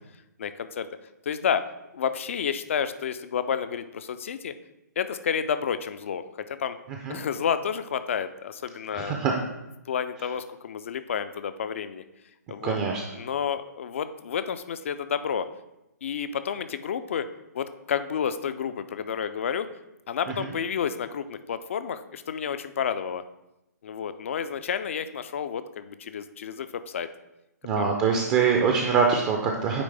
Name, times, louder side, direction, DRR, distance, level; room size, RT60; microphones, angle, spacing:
voice 1, 0.4-0.9 1.3-1.6 1.9-4.5 5.0-6.8 7.1-9.2 9.9-12.0 12.5-12.8 13.1-15.5 16.0-17.3 17.5-19.7 20.1-23.2 23.8-27.1 27.8-27.9, left 7 dB, 45° left, 12 dB, 0.4 m, -30 dB
voice 2, 8.9-9.3 12.6-13.0 27.6-29.8, right 6 dB, 20° right, 2 dB, 0.4 m, -23 dB
9.0 x 3.1 x 3.3 m, 0.93 s
figure-of-eight pair, 130°, 9 cm